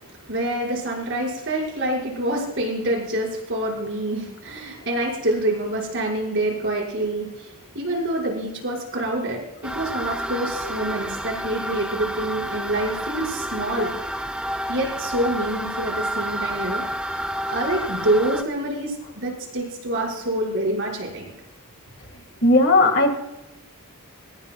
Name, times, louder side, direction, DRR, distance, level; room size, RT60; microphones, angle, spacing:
voice 1, 0.2-13.9 14.7-16.8 17.1-17.2 17.5-21.3, right 1 dB, 55° right, -2 dB, 6.1 m, -26 dB
sound 1, 9.6-18.4, equal, 5° right, 0.7 m, -30 dB
voice 2, 22.4-23.1, left 2 dB, 55° left, 5 dB, 2.2 m, -16 dB
23.5 x 20.5 x 2.4 m, 0.96 s
head